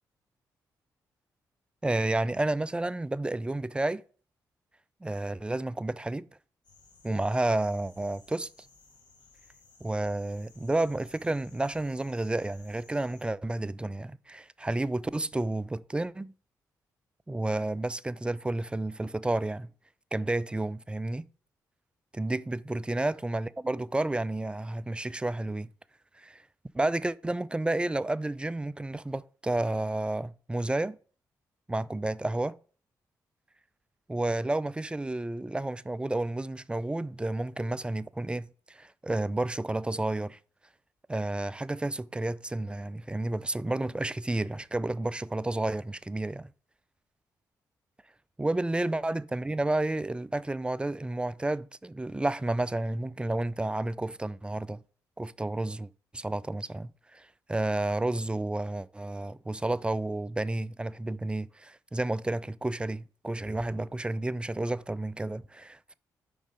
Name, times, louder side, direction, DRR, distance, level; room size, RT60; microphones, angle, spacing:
voice 1, 1.8-4.0 5.0-6.3 7.0-8.5 9.8-16.3 17.3-19.7 20.1-21.3 22.1-25.7 26.2-26.4 26.7-31.0 31.7-32.6 34.1-40.4 41.1-46.5 48.4-54.8 55.2-55.9 56.1-65.9, right 2 dB, 15° right, 0.3 m, -31 dB
sound 1, 6.6-13.3, left 3 dB, 70° left, 1.5 m, -58 dB
5.2 x 3.8 x 5.0 m
supercardioid pair, 55°, 8 cm